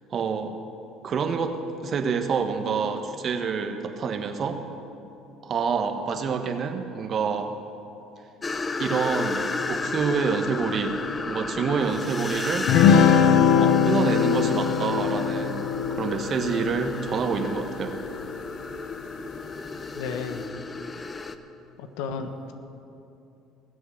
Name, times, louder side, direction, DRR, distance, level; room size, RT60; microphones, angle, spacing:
voice 1, 0.1-0.6 1.0-1.6 1.8-4.6 5.4-7.5 8.8-11.0 11.2-12.7 13.5-18.0, right 6 dB, 45° right, 7 dB, 1.3 m, -27 dB
sound 1, 8.4-21.4, left 3 dB, 25° left, 0.7 m, -33 dB
sound 2, 12.7-18.3, left 7 dB, 70° left, 0.8 m, -22 dB
voice 2, 19.9-20.4 21.8-22.5, left 5 dB, 85° left, 7 dB, 1.2 m, -33 dB
20.5 x 8.0 x 6.5 m, 2.8 s
cardioid pair, 105°, 0 cm